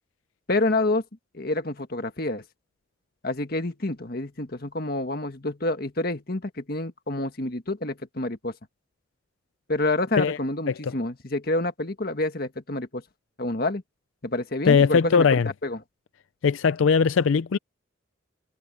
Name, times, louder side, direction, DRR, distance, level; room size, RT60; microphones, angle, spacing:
voice 1, 0.5-1.0 1.3-2.4 3.2-8.5 9.7-13.0 13.4-13.8 14.2-15.3 15.6-15.8, left 2 dB, 50° left, 1.7 m, -28 dB
voice 2, 14.7-15.5 16.4-17.6, left 6 dB, 85° left, 0.4 m, -20 dB
head